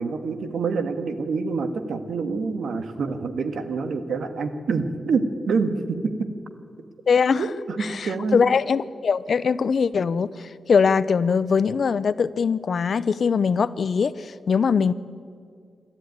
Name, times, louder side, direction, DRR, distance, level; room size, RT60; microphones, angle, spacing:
voice 1, 0.0-6.3 7.4-8.5, right 4 dB, 75° right, 9 dB, 1.7 m, -26 dB
voice 2, 7.1-7.4 7.8-14.9, left 6 dB, 55° left, 16 dB, 0.7 m, -22 dB
27.0 x 13.0 x 9.6 m, 2.2 s
wide cardioid pair, 130°, 0 cm